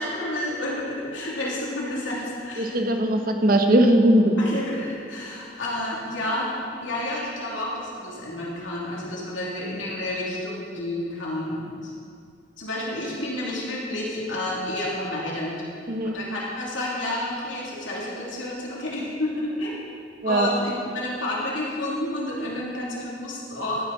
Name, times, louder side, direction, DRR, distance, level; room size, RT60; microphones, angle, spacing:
voice 1, 0.0-2.8 4.4-11.9 12.6-15.6 16.0-19.7 20.2-23.8, left 1 dB, 75° left, -5 dB, 2.7 m, -30 dB
voice 2, 2.6-4.4 15.9-16.2 20.2-20.5, right 1 dB, 45° right, 4 dB, 1.0 m, -19 dB
14.5 x 9.7 x 4.0 m, 2.3 s
head